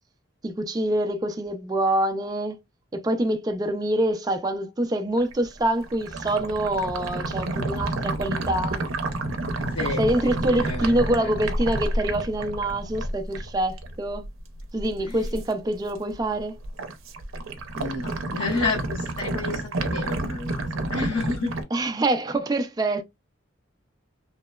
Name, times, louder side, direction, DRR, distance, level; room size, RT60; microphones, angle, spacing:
voice 1, 0.4-2.6 2.9-8.8 10.0-14.2 14.7-16.6 21.7-23.0, right 1 dB, 20° right, 0.3 m, -25 dB
sound 1, 5.2-15.5 15.9-16.3 16.6-21.6, right 2 dB, 85° right, 0.5 m, -30 dB
voice 2, 9.7-11.3 15.0-15.3 17.8-21.5, left 3 dB, 90° left, 1.0 m, -31 dB
2.9 x 2.0 x 2.2 m
head